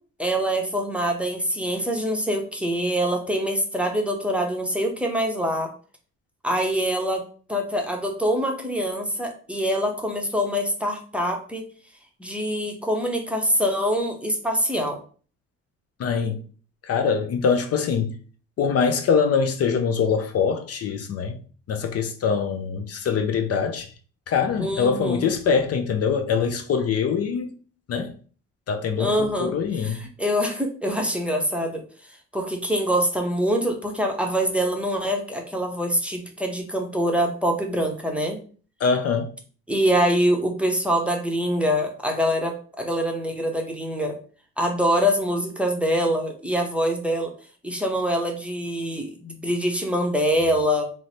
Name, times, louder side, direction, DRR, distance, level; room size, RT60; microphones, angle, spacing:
voice 1, 0.2-5.7 6.4-7.2 7.5-11.6 12.2-15.0 24.6-25.3 29.0-29.5 29.8-31.8 32.3-38.4 39.7-44.2 44.6-47.3 47.6-50.8, equal, 5° right, 0.7 m, -24 dB
voice 2, 16.0-16.4 16.8-18.2 18.6-21.4 21.7-23.9 24.3-27.5 27.9-28.1 28.7-30.0 38.8-39.3, left 6 dB, 55° left, 0.5 m, -23 dB
3.1 x 2.0 x 4.0 m
cardioid pair, 90°, 30 cm